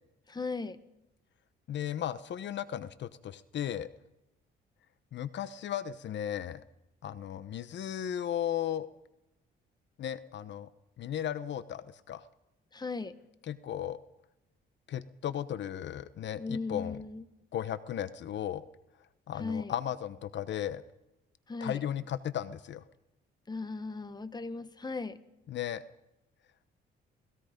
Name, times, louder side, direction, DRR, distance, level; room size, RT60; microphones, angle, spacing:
voice 1, 0.3-0.8 12.7-13.1 16.4-17.2 19.4-19.7 21.5-21.8 23.5-25.2, left 4 dB, 20° left, 13 dB, 1.4 m, -37 dB
voice 2, 1.7-3.9 5.1-6.6 7.0-8.9 10.0-10.7 11.0-12.2 13.5-14.0 14.9-17.0 17.5-18.6 19.3-20.8 21.6-22.8 25.5-25.8, left 10 dB, 65° left, 15 dB, 1.0 m, -35 dB
27.0 x 19.5 x 5.2 m, 0.92 s
cardioid pair, 90°, 20 cm